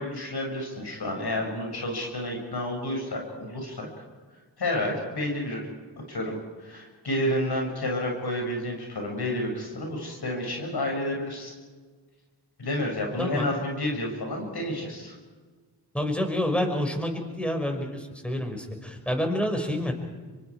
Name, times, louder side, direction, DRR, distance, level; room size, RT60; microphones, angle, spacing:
voice 1, 0.0-3.9 4.6-5.7 6.1-11.5 12.6-15.1, left 1 dB, 60° left, 1 dB, 6.6 m, -30 dB
voice 2, 13.2-13.5 15.9-19.9, left 1 dB, 5° left, 4 dB, 5.7 m, -28 dB
26.0 x 24.0 x 4.8 m, 1.4 s
cardioid pair, 50°, 43 cm